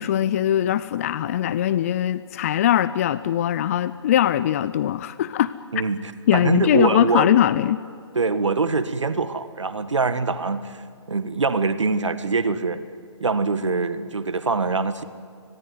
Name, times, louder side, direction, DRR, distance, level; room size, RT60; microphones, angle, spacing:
voice 1, 0.0-5.5 6.3-7.8, left 11 dB, 30° left, 15 dB, 0.5 m, -21 dB
voice 2, 6.3-7.4 8.1-10.8 11.1-12.8 13.2-15.0, right 4 dB, 75° right, 11 dB, 1.7 m, -23 dB
25.0 x 18.0 x 9.6 m, 2.3 s
figure-of-eight pair, 145°, 15 cm